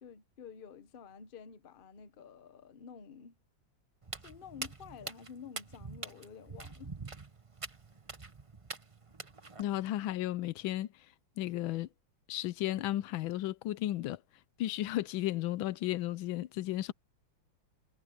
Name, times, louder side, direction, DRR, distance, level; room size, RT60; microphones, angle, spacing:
voice 1, 0.0-3.3 4.2-6.9, left 7 dB, 40° left, 0.8 m, -50 dB
Walk footsteps, 4.0-9.6, right 3 dB, 20° right, 0.9 m, -45 dB
voice 2, 9.6-10.9 11.4-11.9 12.3-14.2 14.6-16.9, left 14 dB, 80° left, 1.4 m, -34 dB
omnidirectional pair, 2.2 m